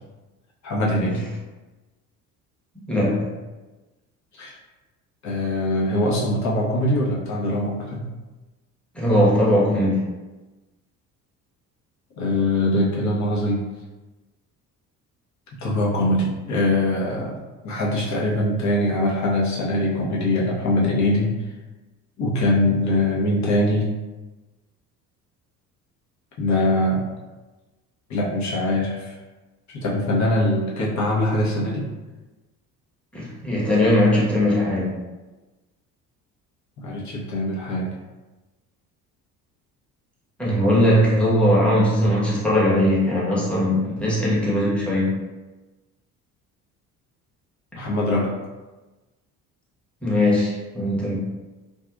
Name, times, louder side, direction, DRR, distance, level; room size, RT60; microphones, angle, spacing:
voice 1, 0.6-1.2 4.3-4.6 5.2-8.1 12.2-13.6 15.6-17.3 17.6-21.3 22.2-23.9 26.4-27.1 28.1-29.2 29.7-31.9 36.8-37.9 47.7-48.4, left 1 dB, 35° left, -4 dB, 0.9 m, -22 dB
voice 2, 2.7-3.3 8.9-10.1 33.1-35.0 40.4-45.2 50.0-51.2, left 1 dB, ahead, -7 dB, 1.0 m, -20 dB
2.6 x 2.4 x 2.3 m, 1.2 s
hypercardioid pair, 60°, 47 cm